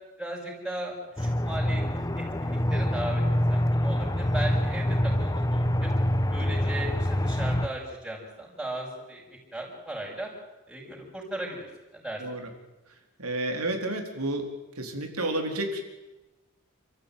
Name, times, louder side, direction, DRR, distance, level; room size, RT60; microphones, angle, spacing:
voice 1, 0.2-1.8 2.2-5.9 6.3-10.3 10.7-11.7 11.9-12.4, right 1 dB, 5° right, -3 dB, 6.2 m, -37 dB
Aircraft, 1.2-7.7, left 1 dB, 15° left, 1.1 m, -26 dB
voice 2, 12.2-12.5 13.2-14.5 14.8-15.8, right 1 dB, 85° right, 5 dB, 4.2 m, -30 dB
29.0 x 14.0 x 9.4 m, 1.0 s
head